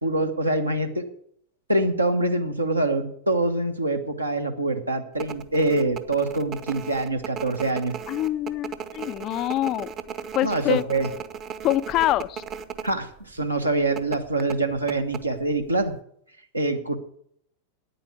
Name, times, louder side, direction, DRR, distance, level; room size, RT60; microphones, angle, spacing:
voice 1, 0.0-1.1 1.7-7.9 10.4-11.1 12.8-15.9 16.5-17.0, right 2 dB, 85° right, 5 dB, 1.3 m, -25 dB
sound 1, 5.2-12.9 13.2-13.3 14.0-15.6 15.9-16.0, right 7 dB, 30° right, 0.7 m, -36 dB
voice 2, 8.1-9.9 10.3-10.8 11.6-12.4, left 14 dB, 35° left, 17 dB, 0.4 m, -25 dB
9.5 x 8.5 x 8.2 m, 0.67 s
figure-of-eight pair, 90°, 0 cm